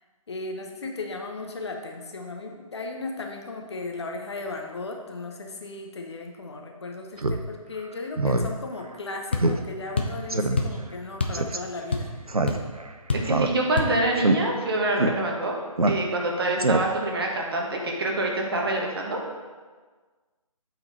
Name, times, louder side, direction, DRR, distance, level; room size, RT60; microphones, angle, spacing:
voice 1, 0.3-12.1, left 3 dB, 50° left, 2 dB, 1.0 m, -36 dB
Speech synthesizer, 7.2-7.4 7.8-7.9 8.2-8.5 8.8-8.9 9.4-9.6 9.9-10.0 10.3-10.6 11.3-11.6 12.3-12.9 13.2-13.8 14.2-14.4 15.0-15.1 15.8-16.3 16.6-17.1, right 2 dB, 85° right, 0.6 m, -23 dB
sound 1, 9.3-9.5 10.0-10.2 10.6-10.8 11.2-11.4 11.7-12.2 12.5-12.6 13.1-13.3 13.8-13.9, left 3 dB, 20° left, 0.3 m, -26 dB
voice 2, 13.1-15.5 15.9-19.2, right 2 dB, 40° right, 0 dB, 1.2 m, -26 dB
7.9 x 4.3 x 4.1 m, 1.4 s
figure-of-eight pair, 145°, 18 cm